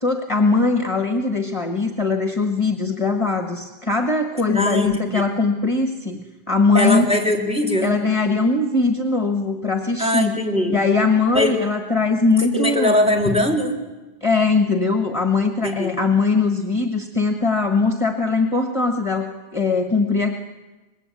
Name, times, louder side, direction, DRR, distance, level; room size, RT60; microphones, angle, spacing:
voice 1, 0.0-7.1 7.8-10.4 10.7-13.0 14.2-20.4, left 3 dB, 30° left, 5 dB, 1.6 m, -20 dB
voice 2, 4.5-5.2 6.7-7.9 10.0-10.8 11.3-11.6 12.4-13.8 15.6-15.9, left 1 dB, 5° right, 2 dB, 3.6 m, -21 dB
25.5 x 21.0 x 8.5 m, 1.1 s
omnidirectional pair, 1.1 m